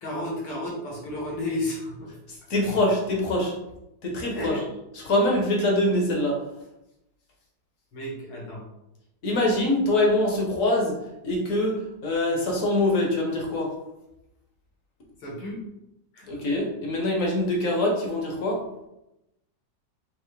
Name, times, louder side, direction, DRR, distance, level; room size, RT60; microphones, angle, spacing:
voice 1, 0.0-2.1 2.6-2.7 4.3-4.7 7.9-8.6 15.2-15.6 16.1-16.3, left 1 dB, 75° left, -4 dB, 2.3 m, -32 dB
voice 2, 2.5-3.5 4.0-4.6 5.0-6.4 9.2-11.0 11.2-13.7 16.2-18.6, left 1 dB, 50° left, -1 dB, 1.2 m, -24 dB
5.6 x 2.7 x 3.3 m, 0.90 s
omnidirectional pair, 2.1 m